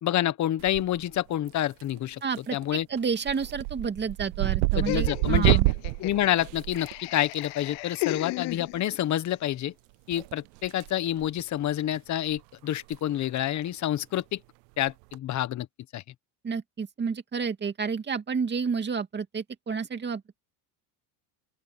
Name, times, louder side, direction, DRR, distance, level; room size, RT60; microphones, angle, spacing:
voice 1, 0.0-2.2 2.5-2.9 4.8-5.6 6.0-9.7 10.1-14.4 14.8-15.7 15.9-16.0, left 12 dB, 40° left, 1.1 m, -28 dB
sound 1, 0.6-1.2 1.5-2.0 2.4-2.6 3.0-7.4 8.7-8.9 10.1-10.9 11.2-11.4 11.9-12.0 12.3-12.4 12.8-13.0 13.2-13.3 14.9-15.1, right 27 dB, 80° right, 0.6 m, -27 dB
voice 2, 2.2-2.6 2.9-5.7 16.4-20.2, right 5 dB, 25° right, 2.5 m, -30 dB
Laughter, 4.9-9.1, left 24 dB, 70° left, 0.9 m, -36 dB
open air
cardioid pair, 125°, 44 cm